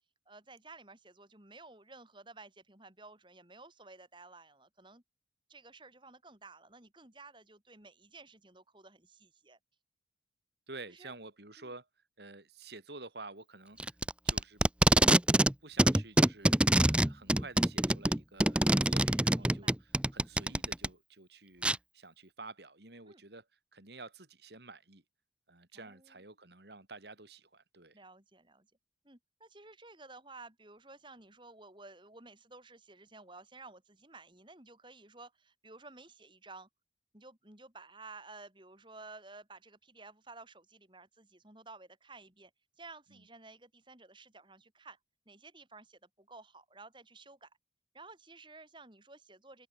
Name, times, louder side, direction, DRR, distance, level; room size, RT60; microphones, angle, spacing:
voice 1, 0.3-5.0 5.5-9.6 10.9-11.1 11.6-11.7 19.4-19.8 23.1-23.2 25.7-26.2 27.9-28.7 29.0-36.7 37.1-42.5 42.8-45.0 45.3-47.5 47.9-49.7, right 3 dB, 25° right, 3.8 m, -54 dB
voice 2, 10.7-11.9 12.2-14.0 14.2-14.6 14.9-15.0 15.6-16.6 16.9-21.7 21.9-25.0 25.5-28.0 43.1-43.2, right 3 dB, 65° right, 3.0 m, -50 dB
Packing tape duct tape, 13.8-15.5 15.8-20.9 21.6-21.8, right 1 dB, 5° right, 0.5 m, -25 dB
open air
head